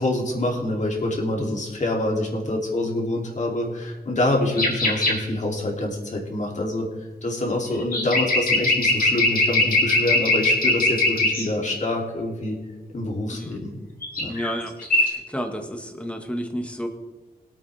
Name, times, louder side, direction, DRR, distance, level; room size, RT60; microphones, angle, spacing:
voice 1, 0.0-6.9 7.2-12.6 12.9-13.7 14.2-14.3, left 1 dB, 50° left, -1 dB, 3.0 m, -26 dB
sound 1, 4.6-5.2 7.8-11.5 14.0-14.5 14.8-15.1, left 2 dB, 65° left, 3.6 m, -21 dB
voice 2, 14.3-16.9, equal, 5° left, 4 dB, 1.7 m, -31 dB
23.0 x 8.7 x 3.5 m, 1.2 s
wide cardioid pair, 115°, 16 cm